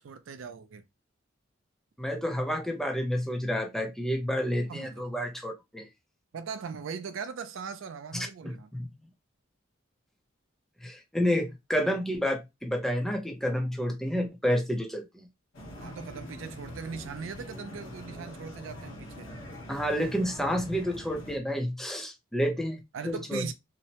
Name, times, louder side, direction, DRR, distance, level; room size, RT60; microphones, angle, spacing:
voice 1, 0.0-0.8 4.7-5.1 6.3-8.7 15.8-19.3 22.9-23.5, right 5 dB, 75° right, 0.4 m, -39 dB
voice 2, 2.0-5.9 8.1-8.9 10.8-15.2 19.7-23.5, equal, ahead, 0.5 m, -30 dB
sound 1, 15.5-21.4, left 1 dB, 75° left, 1.0 m, -43 dB
2.8 x 2.1 x 2.8 m
head